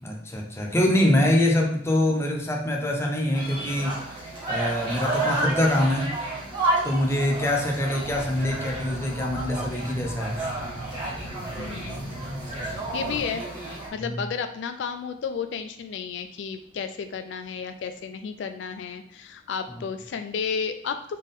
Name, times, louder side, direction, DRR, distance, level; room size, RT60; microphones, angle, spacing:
voice 1, 0.0-4.0 4.5-6.2 6.8-10.4 14.0-14.2, left 1 dB, 15° left, 1 dB, 0.6 m, -24 dB
sound 1, 3.3-13.9, right 2 dB, 25° right, 1.7 m, -31 dB
sound 2, 8.0-13.3, equal, 45° right, 0.7 m, -39 dB
voice 2, 11.6-12.2 12.6-13.5 13.9-21.0, left 6 dB, 70° left, 8 dB, 0.3 m, -32 dB
4.1 x 3.5 x 3.6 m, 0.70 s
head